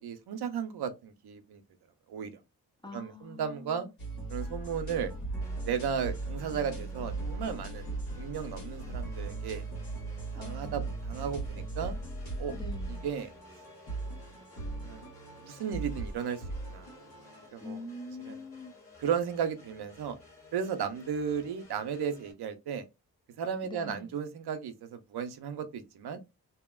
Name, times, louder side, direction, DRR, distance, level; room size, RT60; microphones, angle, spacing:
voice 1, 0.0-1.6 2.1-2.3 2.9-3.9 4.3-5.1 5.7-7.9 8.2-9.6 10.3-12.0 12.4-12.5 12.9-13.3 14.1-14.4 14.8-15.1 15.4-16.4 16.7-16.9 17.5-17.8 18.3-18.4 19.0-20.2 20.5-22.8 23.4-26.2, right 7 dB, 75° right, 0.7 m, -35 dB
voice 2, 2.8-3.9 10.3-10.8 11.2-11.3 12.5-13.1 17.6-18.7 23.6-24.2, left 2 dB, 10° left, 0.6 m, -44 dB
sound 1, 4.0-17.5, right 3 dB, 80° left, 1.5 m, -38 dB
sound 2, 5.4-22.3, left 3 dB, 35° left, 1.4 m, -56 dB
2.9 x 2.7 x 2.3 m
supercardioid pair, 45°, 39 cm